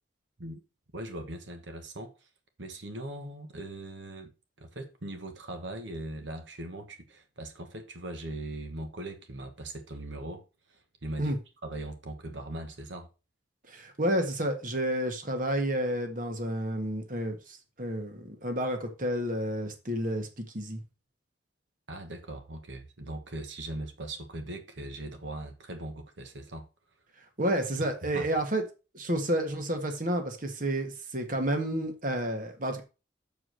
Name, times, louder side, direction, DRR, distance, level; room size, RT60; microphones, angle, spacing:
voice 1, 0.9-2.3 2.6-4.3 4.6-10.4 10.7-11.3 11.6-13.1 21.9-26.6 27.8-28.4, right 1 dB, 85° right, 1.3 m, -40 dB
voice 2, 13.7-20.8 27.4-28.6 28.9-32.8, right 1 dB, 45° right, 1.6 m, -30 dB
7.4 x 4.9 x 6.3 m
head